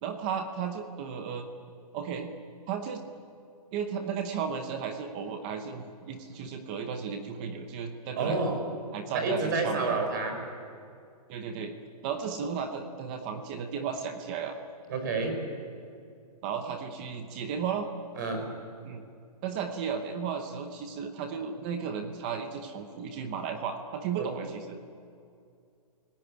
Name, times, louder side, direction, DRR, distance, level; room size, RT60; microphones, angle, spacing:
voice 1, 0.0-1.5 1.9-2.3 2.7-3.0 3.7-8.4 8.9-10.0 11.3-11.7 12.0-14.6 16.4-17.9 18.8-19.0 19.4-24.8, right 6 dB, 15° right, 6 dB, 0.8 m, -34 dB
voice 2, 8.2-8.6 9.1-10.4 14.9-15.4 18.2-18.5 24.2-24.3, right 3 dB, 30° right, 4 dB, 4.9 m, -29 dB
27.5 x 17.5 x 10.0 m, 2.4 s
hypercardioid pair, 180°, 20 cm